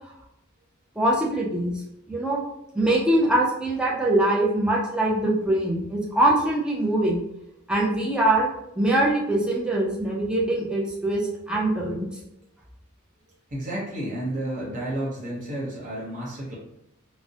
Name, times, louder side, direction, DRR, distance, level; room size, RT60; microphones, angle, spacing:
voice 1, 1.0-1.8 2.1-2.4 2.7-7.2 7.7-8.5 8.8-12.1, right 1 dB, 5° right, -4 dB, 0.4 m, -23 dB
voice 2, 13.5-16.6, right 1 dB, 40° right, -6 dB, 0.7 m, -31 dB
2.4 x 2.0 x 2.6 m, 0.80 s
head